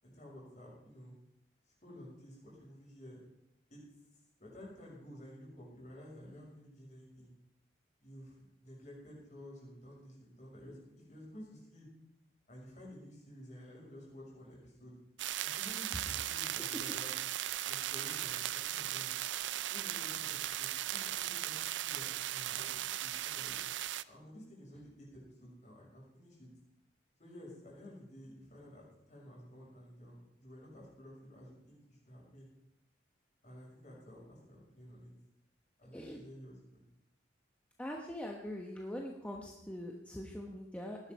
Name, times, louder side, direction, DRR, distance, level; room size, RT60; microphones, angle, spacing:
voice 1, 0.0-1.1 1.8-3.2 3.7-3.8 4.4-7.3 8.0-10.8 11.1-11.9 12.5-14.9 15.4-17.1 17.7-19.1 19.7-21.6 21.8-23.6 24.0-26.5 27.2-32.5 33.4-35.1 35.8-36.8, equal, 40° left, -4 dB, 6.7 m, -52 dB
sound 1, 15.2-24.0, right 13 dB, 80° right, 0.4 m, -37 dB
voice 2, 37.8-41.0, left 1 dB, 5° left, 0 dB, 1.2 m, -42 dB
19.0 x 11.0 x 4.8 m, 0.85 s
head